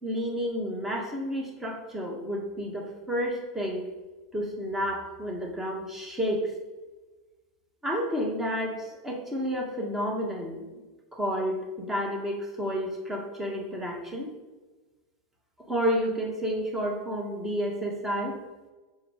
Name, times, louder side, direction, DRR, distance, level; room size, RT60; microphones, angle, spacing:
voice 1, 0.0-3.9 4.3-6.5 7.8-10.8 11.1-14.3 15.7-18.4, equal, 10° right, 0 dB, 1.4 m, -30 dB
4.7 x 4.2 x 5.1 m, 1.2 s
supercardioid pair, 120°, 3 cm